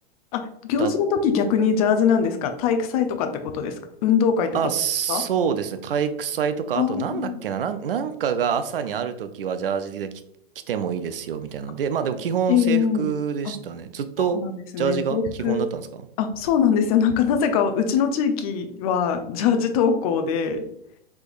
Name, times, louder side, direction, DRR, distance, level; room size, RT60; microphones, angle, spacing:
voice 1, 0.3-3.8 4.0-4.6 5.1-5.2 6.7-7.4 12.5-13.1 13.4-13.5 14.2-15.7 16.2-20.6, left 7 dB, 35° left, 7 dB, 0.6 m, -22 dB
voice 2, 4.5-10.1 10.7-14.4 14.8-16.0, right 7 dB, 65° right, 10 dB, 0.5 m, -26 dB
4.5 x 3.5 x 2.5 m, 0.75 s
figure-of-eight pair, 105°, 31 cm